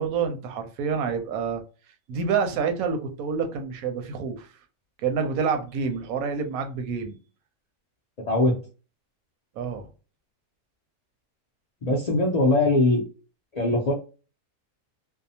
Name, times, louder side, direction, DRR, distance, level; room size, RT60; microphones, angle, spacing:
voice 1, 0.0-1.6 2.1-4.5 5.0-7.2 9.6-9.9, right 6 dB, 85° right, 1.1 m, -27 dB
voice 2, 8.3-8.6 11.8-13.0 13.5-13.9, left 2 dB, 80° left, 0.3 m, -21 dB
2.7 x 2.0 x 2.7 m
omnidirectional pair, 1.5 m